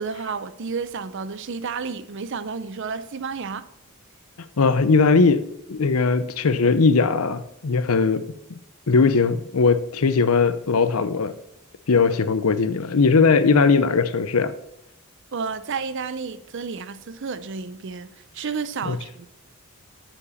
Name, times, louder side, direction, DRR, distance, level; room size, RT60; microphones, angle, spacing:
voice 1, 0.0-3.7 15.3-19.3, right 5 dB, 55° right, 0.5 m, -31 dB
voice 2, 4.6-5.4 5.7-8.2 8.9-11.3 11.9-14.5 18.9-19.0, left 4 dB, 75° left, 0.7 m, -19 dB
7.3 x 6.9 x 7.0 m
head